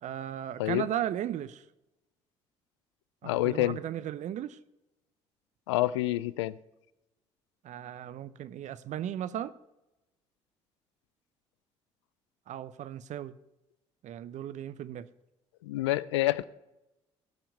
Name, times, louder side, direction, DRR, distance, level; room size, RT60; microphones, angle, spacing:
voice 1, 0.0-1.6 3.2-4.6 7.6-9.5 12.5-13.4 14.0-15.1, right 11 dB, 55° right, 0.7 m, -36 dB
voice 2, 3.2-3.8 5.7-6.5 15.6-16.4, left 16 dB, 85° left, 0.4 m, -27 dB
17.5 x 5.9 x 5.3 m
hypercardioid pair, 55°, 14 cm